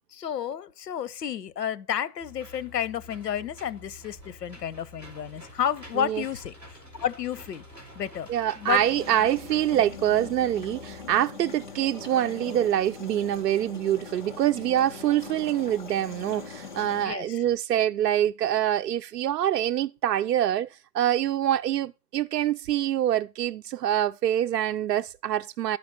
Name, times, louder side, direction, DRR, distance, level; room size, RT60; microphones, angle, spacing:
voice 1, 0.1-7.6 7.9-8.3 8.6-8.9 17.0-17.4, left 9 dB, 90° left, 0.9 m, -31 dB
Engine / Mechanisms, 2.2-11.2, left 1 dB, 5° right, 2.9 m, -48 dB
voice 2, 8.3-20.7 20.9-25.8, right 11 dB, 85° right, 0.6 m, -25 dB
sound 1, 8.7-17.1, left 5 dB, 30° left, 0.9 m, -42 dB
10.5 x 5.2 x 5.2 m
hypercardioid pair, 180°, 47 cm